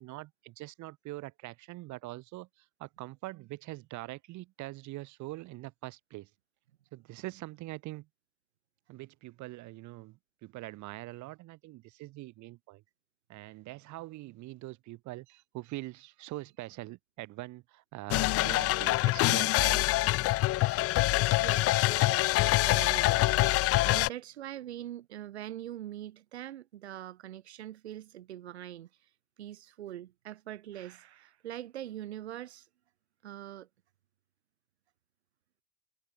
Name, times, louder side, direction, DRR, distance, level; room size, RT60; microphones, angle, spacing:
voice 1, 0.0-6.3 6.9-8.1 8.9-12.8 13.3-19.8, right 19 dB, 60° right, 6.8 m, -43 dB
sound 1, 18.1-24.1, left 18 dB, 45° left, 0.6 m, -25 dB
voice 2, 21.4-29.1 29.4-32.7 33.2-33.7, right 12 dB, 75° right, 5.4 m, -43 dB
figure-of-eight pair, 50°, 33 cm